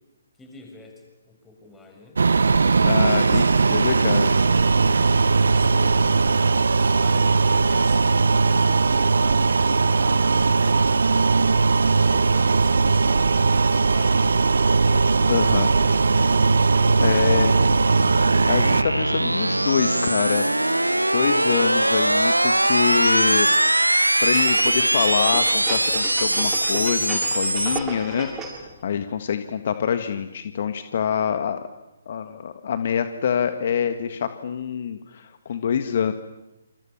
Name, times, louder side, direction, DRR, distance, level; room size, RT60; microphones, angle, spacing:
voice 1, 0.4-2.2 2.8-3.5 5.4-6.1 6.9-11.0, left 3 dB, 10° left, 2 dB, 7.1 m, -46 dB
sound 1, 2.2-18.8, right 4 dB, 65° right, 1.4 m, -19 dB
voice 2, 2.8-3.4 3.7-4.3 15.3-15.7 17.0-17.5 18.4-20.4 21.0-23.5 24.2-31.7 32.1-36.1, left 8 dB, 50° left, 9 dB, 1.7 m, -25 dB
sound 2, 15.4-27.8, right 1 dB, 90° right, 1.1 m, -22 dB
sound 3, 24.3-28.7 29.1-29.2, right 3 dB, 15° right, 7.2 m, -34 dB
28.5 x 28.0 x 7.3 m, 0.99 s
figure-of-eight pair, 135°, 0 cm